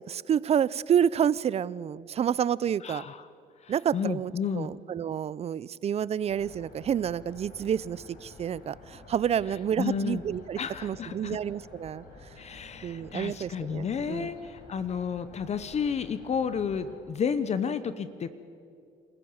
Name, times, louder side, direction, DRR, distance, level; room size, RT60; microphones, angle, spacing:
voice 1, 0.0-3.0 3.7-12.0 12.8-14.3, right 9 dB, 40° right, 20 dB, 0.5 m, -29 dB
voice 2, 2.8-3.3 3.6-4.7 9.8-10.2 10.6-11.4 12.4-18.4, left 6 dB, 40° left, 13 dB, 0.9 m, -31 dB
sound 1, 6.2-17.0, left 3 dB, 65° left, 5.7 m, -50 dB
27.5 x 14.5 x 7.2 m, 2.4 s
cardioid pair, 110°, 17 cm